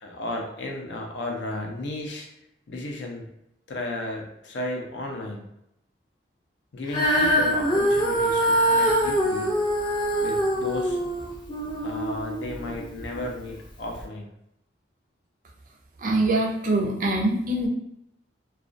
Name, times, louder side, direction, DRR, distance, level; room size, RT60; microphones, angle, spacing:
voice 1, 0.0-2.3 2.7-3.3 3.7-5.5 6.7-9.6 10.2-11.0 11.8-14.3, left 1 dB, 85° left, 1 dB, 0.5 m, -34 dB
Female singing, 6.9-13.2 13.9-14.0, equal, 25° left, 0.4 m, -24 dB
voice 2, 16.0-17.7, right 2 dB, 45° right, 1 dB, 0.4 m, -23 dB
2.3 x 2.1 x 2.4 m, 0.80 s
head